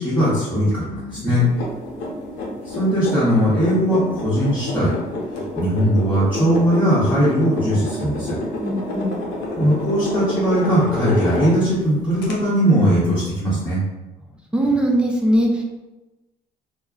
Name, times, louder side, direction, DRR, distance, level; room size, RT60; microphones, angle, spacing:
voice 1, 0.0-1.4 2.7-4.9 5.6-8.3 9.6-13.8, equal, 10° left, -11 dB, 0.9 m, -19 dB
voice 2, 1.2-2.3 8.6-9.2 14.5-15.6, right 1 dB, 5° right, -1 dB, 0.5 m, -22 dB
sound 1, 1.3-11.8 12.2-12.3, left 1 dB, 90° left, 0.6 m, -29 dB
2.2 x 2.1 x 3.6 m, 1.1 s
cardioid pair, 110°, 17 cm